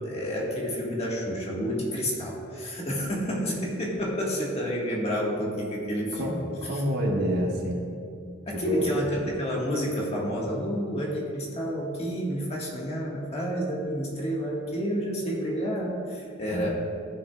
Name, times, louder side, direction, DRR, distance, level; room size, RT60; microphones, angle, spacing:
voice 1, 0.0-6.3 8.5-16.7, equal, 30° left, -3 dB, 1.5 m, -29 dB
voice 2, 6.1-7.8 8.6-8.9 16.5-16.7, equal, 50° right, -1 dB, 1.3 m, -28 dB
14.5 x 6.4 x 2.3 m, 2.4 s
head